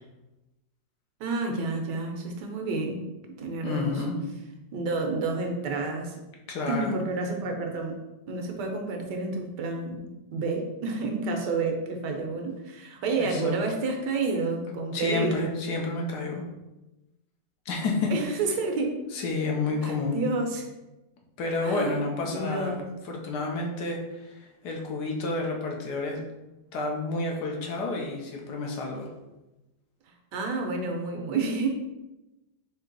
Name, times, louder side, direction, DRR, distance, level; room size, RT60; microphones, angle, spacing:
voice 1, 1.2-3.0 3.4-4.0 4.7-6.2 6.7-8.0 8.3-10.1 10.3-15.5 18.1-18.9 19.8-20.6 21.6-22.0 22.2-22.8 30.3-31.7, right 3 dB, 75° right, 2 dB, 1.3 m, -29 dB
voice 2, 3.6-4.2 6.5-6.9 13.2-13.5 14.9-16.4 17.7-18.1 19.1-20.2 21.4-22.7 23.0-26.2 26.7-29.1, left 3 dB, 70° left, 0 dB, 1.3 m, -30 dB
4.6 x 2.9 x 3.8 m, 1.0 s
omnidirectional pair, 1.9 m